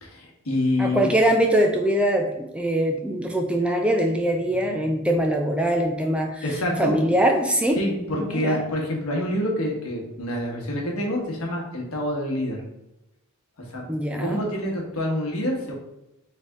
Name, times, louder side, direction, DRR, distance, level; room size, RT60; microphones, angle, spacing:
voice 1, 0.0-1.1 6.4-6.9 7.8-12.6 13.7-13.8 14.2-15.7, left 1 dB, 75° left, 0 dB, 1.2 m, -27 dB
voice 2, 0.8-6.4 6.8-7.8 8.2-8.6 13.9-14.4, right 1 dB, 5° right, 2 dB, 0.4 m, -22 dB
4.1 x 3.4 x 3.5 m, 0.89 s
head